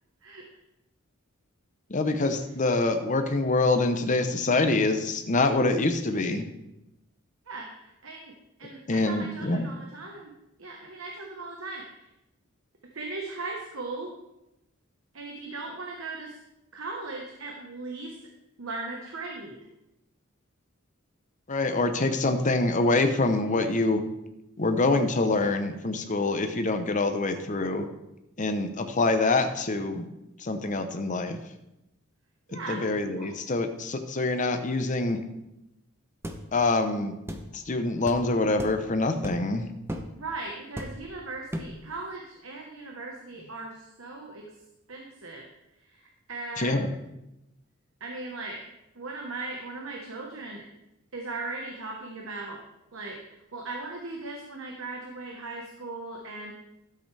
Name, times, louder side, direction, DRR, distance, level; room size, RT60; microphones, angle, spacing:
voice 1, 1.9-6.5 8.9-9.7 21.5-24.0 24.6-27.9 28.4-30.0 30.4-31.4 32.7-35.2 36.5-37.2 37.5-39.6 46.6-46.9, left 2 dB, 35° left, 7 dB, 0.8 m, -25 dB
voice 2, 7.5-8.3 8.6-10.3 10.6-11.9 12.9-14.1 15.1-16.4 16.7-18.2 18.6-19.6 32.5-32.8 33.1-33.3 40.1-44.5 44.9-45.4 45.9-46.0 46.3-46.8 48.0-48.6 48.9-50.6 51.1-52.6 52.9-53.2 53.5-56.5, right 3 dB, 70° right, 0 dB, 1.2 m, -38 dB
sound 1, 36.2-36.4 37.3-37.5 38.1-38.2 38.6-38.8 39.2-39.5 39.9-40.1 40.8-41.1 41.5-41.8, equal, 10° right, 0.7 m, -35 dB
12.5 x 7.8 x 3.4 m, 0.89 s
head